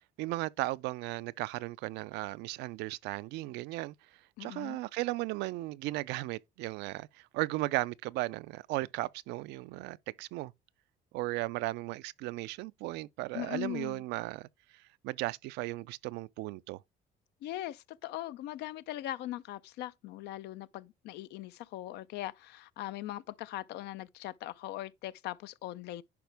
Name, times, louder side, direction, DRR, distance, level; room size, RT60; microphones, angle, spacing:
voice 1, 0.2-3.9 4.4-10.5 11.1-14.5 15.0-16.8, right 19 dB, 90° right, 0.4 m, -36 dB
voice 2, 4.4-4.8 13.3-14.0 17.4-26.0, left 14 dB, 80° left, 0.5 m, -40 dB
10.5 x 5.0 x 3.4 m
cardioid pair, 110°, 17 cm